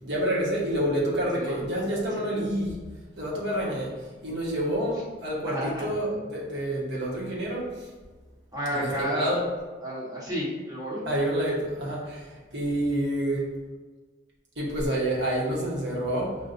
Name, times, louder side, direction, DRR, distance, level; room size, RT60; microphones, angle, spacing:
voice 1, 0.0-2.8 3.2-4.0 4.2-7.7 8.7-9.4 11.0-12.2 12.5-13.5 14.6-16.4, right 1 dB, 80° right, -4 dB, 1.2 m, -28 dB
voice 2, 5.4-5.9 8.5-9.3 9.8-11.0, equal, 20° right, -6 dB, 1.1 m, -31 dB
5.6 x 2.4 x 2.5 m, 1.4 s
head